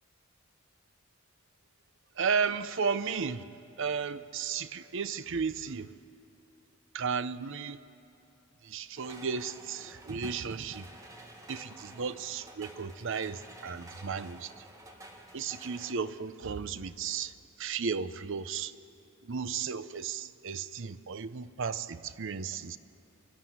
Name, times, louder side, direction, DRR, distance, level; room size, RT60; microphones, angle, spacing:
voice 1, 2.2-3.4 3.8-6.0 6.9-7.8 8.6-10.9 11.5-14.6 15.3-18.7 19.2-22.8, right 6 dB, 60° right, 14 dB, 0.6 m, -34 dB
sound 1, 9.0-16.0, right 1 dB, 15° right, 1.5 m, -51 dB
26.0 x 11.5 x 9.4 m, 2.8 s
head